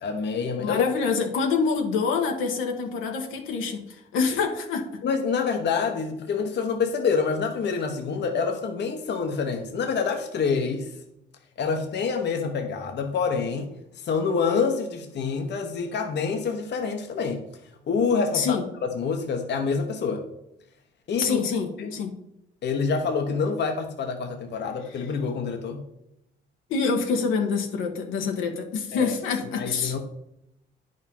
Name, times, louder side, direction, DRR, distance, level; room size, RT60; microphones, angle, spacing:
voice 1, 0.0-0.8 5.0-10.9 11.6-17.4 17.9-20.2 21.1-21.4 21.8-21.9 22.6-25.8 28.9-29.1 29.6-30.0, left 5 dB, 60° left, 4 dB, 1.2 m, -27 dB
voice 2, 0.6-5.0 18.3-18.6 21.2-22.1 26.7-29.9, left 5 dB, 90° left, 2 dB, 1.5 m, -26 dB
9.7 x 5.3 x 5.5 m, 0.83 s
cardioid pair, 90°, 20 cm